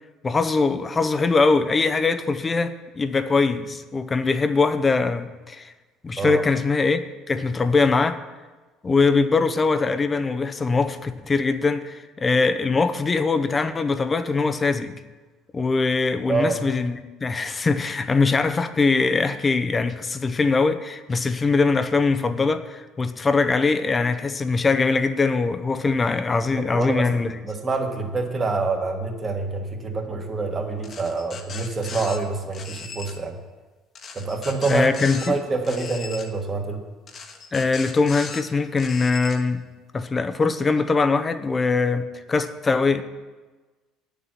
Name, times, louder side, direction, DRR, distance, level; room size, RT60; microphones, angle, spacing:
voice 1, 0.2-5.7 6.0-7.0 7.3-8.2 8.8-14.9 15.5-27.4 34.7-35.4 37.5-39.6 39.9-43.0, left 4 dB, 20° left, 0.7 m, -22 dB
voice 2, 16.3-16.6 26.5-33.4 34.1-34.9 35.2-36.8, right 3 dB, 25° right, 1.5 m, -26 dB
sound 1, 30.8-32.2 32.5-33.1 33.9-35.3 35.6-36.3 37.1-38.4 38.8-39.4, left 5 dB, 35° left, 1.2 m, -37 dB
9.1 x 7.0 x 9.0 m
cardioid pair, 145°, 0 cm